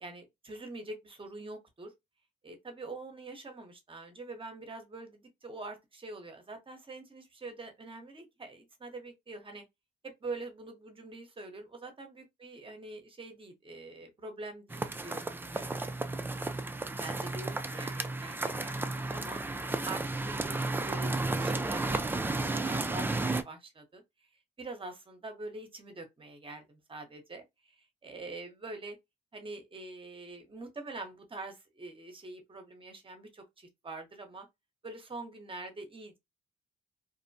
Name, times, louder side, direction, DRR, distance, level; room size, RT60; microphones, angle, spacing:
voice 1, 0.0-1.9 2.4-9.6 10.2-15.7 16.9-24.0 24.6-27.4 28.0-29.0 29.3-34.5 34.8-36.2, right 2 dB, 25° right, 0.8 m, -45 dB
sound 1, 14.7-23.4, right 2 dB, 10° right, 0.3 m, -33 dB
2.6 x 2.1 x 2.6 m
cardioid pair, 90°, 20 cm